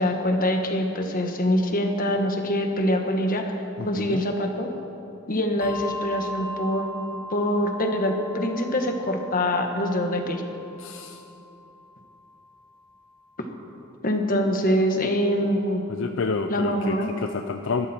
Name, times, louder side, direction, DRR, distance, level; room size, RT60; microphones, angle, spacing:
voice 1, 0.0-3.6 3.8-4.7 5.3-7.0 7.3-10.4 14.0-15.8 16.5-17.1, equal, 45° left, 4 dB, 1.5 m, -24 dB
voice 2, 3.8-4.2 10.8-11.2 15.9-17.9, left 4 dB, 65° left, 6 dB, 0.5 m, -29 dB
Bell, 5.6-12.5, equal, 10° right, 2.0 m, -39 dB
20.5 x 13.5 x 4.4 m, 2.8 s
head